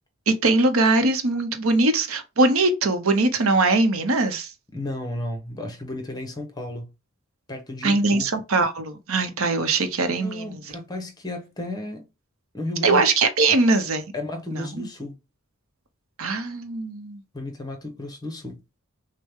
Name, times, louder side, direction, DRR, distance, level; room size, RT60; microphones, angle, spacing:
voice 1, 0.3-4.5 7.8-10.5 12.8-14.0 14.5-14.9 16.2-17.2, right 3 dB, 70° right, 0.8 m, -21 dB
voice 2, 4.7-6.9 7.5-8.3 10.2-12.1 12.5-13.0 14.1-15.2 17.3-18.6, left 1 dB, 20° left, 1.0 m, -33 dB
6.3 x 2.2 x 3.6 m
head